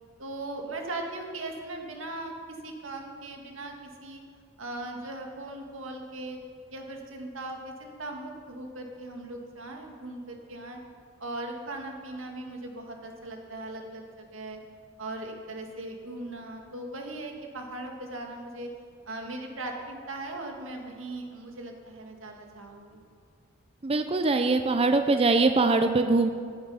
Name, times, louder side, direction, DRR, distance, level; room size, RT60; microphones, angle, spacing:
voice 1, 0.2-2.3 2.6-3.7 4.0-4.2 4.6-6.4 6.7-10.8 11.2-14.6 15.0-18.7 19.1-23.0, right 2 dB, 90° right, 2 dB, 1.9 m, -39 dB
voice 2, 23.8-26.3, right 3 dB, 30° right, 7 dB, 0.5 m, -22 dB
15.0 x 10.0 x 5.6 m, 2.2 s
head